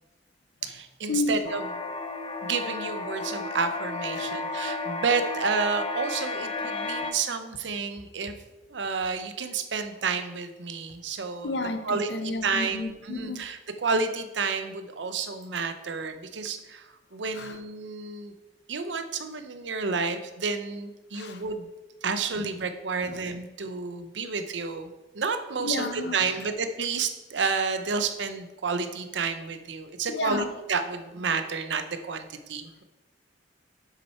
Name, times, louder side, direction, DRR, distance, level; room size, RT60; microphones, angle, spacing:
voice 1, 0.6-1.6 2.4-8.3 8.7-11.6 11.8-18.3 18.7-21.7 22.0-32.8, right 5 dB, 80° right, 8 dB, 0.7 m, -30 dB
sound 1, 1.5-7.1, left 3 dB, 30° left, 0.5 m, -33 dB
voice 2, 11.4-13.4 17.3-17.6 21.1-21.4 22.4-22.5 23.0-23.2 25.6-26.4 30.1-30.5, left 3 dB, 65° left, 8 dB, 0.8 m, -32 dB
7.5 x 6.4 x 4.3 m, 1.1 s
head